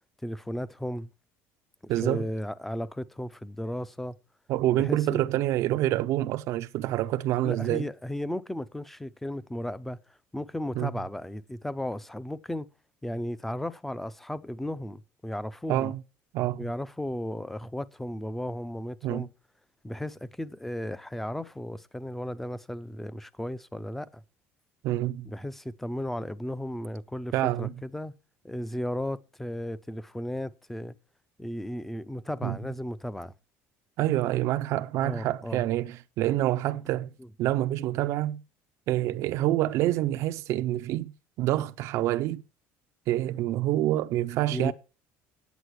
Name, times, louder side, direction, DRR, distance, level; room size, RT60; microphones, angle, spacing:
voice 1, 0.2-1.1 2.0-4.2 4.8-5.2 7.4-10.0 10.3-12.7 13.0-15.9 16.6-19.3 19.8-24.2 25.2-28.1 28.4-31.0 31.4-33.3 35.0-35.6 44.5-44.7, left 1 dB, 5° left, 0.5 m, -35 dB
voice 2, 1.9-2.2 4.5-7.8 10.8-10.9 15.7-16.0 16.3-16.7 19.0-19.3 24.8-25.3 27.3-27.7 32.4-32.6 34.0-37.1 37.4-38.4 38.9-41.1 41.4-42.4 43.1-44.7, right 14 dB, 55° right, 0.5 m, -27 dB
9.0 x 8.2 x 6.2 m
cardioid pair, 145°, 6 cm